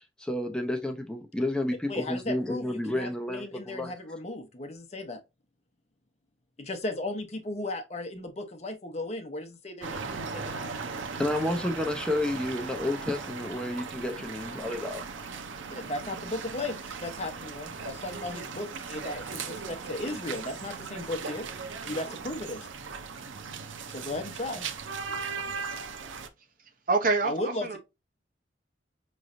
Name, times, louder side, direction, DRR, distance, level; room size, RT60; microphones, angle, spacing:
voice 1, 0.0-3.9 11.2-15.0, left 1 dB, 5° left, 0.6 m, -31 dB
voice 2, 1.9-5.2 6.6-10.7 15.7-21.5 21.9-22.7 23.9-24.7 27.2-27.8, left 2 dB, 35° left, 0.8 m, -36 dB
sound 1, 9.8-26.3, right 5 dB, 85° right, 0.6 m, -38 dB
voice 3, 26.9-27.8, right 3 dB, 45° right, 0.7 m, -26 dB
5.3 x 3.1 x 2.5 m
head